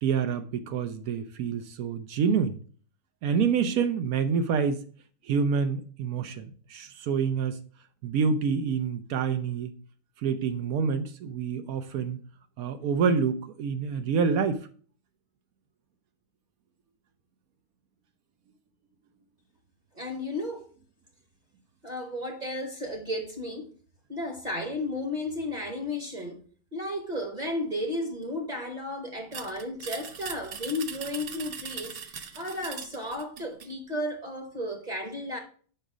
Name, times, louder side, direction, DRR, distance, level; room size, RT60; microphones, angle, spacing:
voice 1, 0.0-2.6 3.2-4.8 5.2-7.6 8.0-9.7 10.2-12.2 12.6-14.7, right 6 dB, 75° right, 1.1 m, -27 dB
voice 2, 19.9-20.6 21.8-23.7 24.1-26.4 26.7-35.4, left 1 dB, 30° right, 1.0 m, -33 dB
sound 1, 29.3-33.7, right 6 dB, 55° right, 0.7 m, -40 dB
5.4 x 5.0 x 4.9 m
omnidirectional pair, 1.6 m